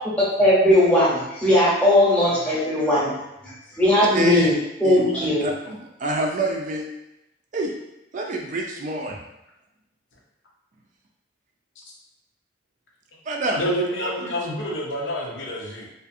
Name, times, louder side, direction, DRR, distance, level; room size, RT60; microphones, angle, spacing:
voice 1, 0.2-3.1 3.4-4.5 4.8-5.5, left 1 dB, 10° left, -8 dB, 0.8 m, -18 dB
voice 2, 4.1-4.5 4.8-6.9 7.5-7.7 8.1-9.2 13.3-13.6 14.0-14.3, right 2 dB, 45° right, 1 dB, 0.3 m, -27 dB
voice 3, 13.5-15.9, equal, 80° left, -3 dB, 0.6 m, -28 dB
2.5 x 2.4 x 2.5 m, 0.88 s
head